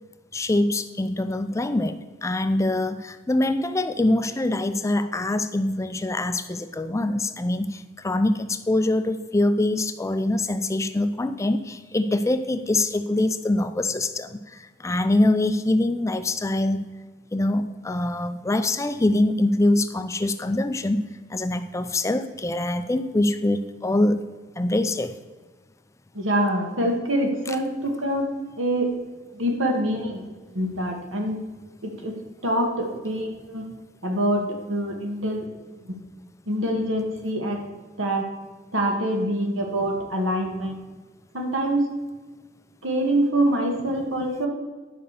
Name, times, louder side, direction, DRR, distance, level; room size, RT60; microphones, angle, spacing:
voice 1, 0.3-14.4 14.8-16.9 17.3-21.0 21.3-24.2 24.6-25.1, left 1 dB, 15° left, 10 dB, 0.4 m, -24 dB
voice 2, 26.2-28.3 28.6-28.9 29.3-30.2 30.5-31.4 31.8-32.1 32.4-33.6 34.0-35.5 36.5-37.7 38.0-38.3 38.7-40.7 41.3-41.8 42.8-44.5, right 1 dB, 85° right, 2 dB, 1.9 m, -25 dB
11.0 x 5.2 x 6.6 m, 1.3 s
head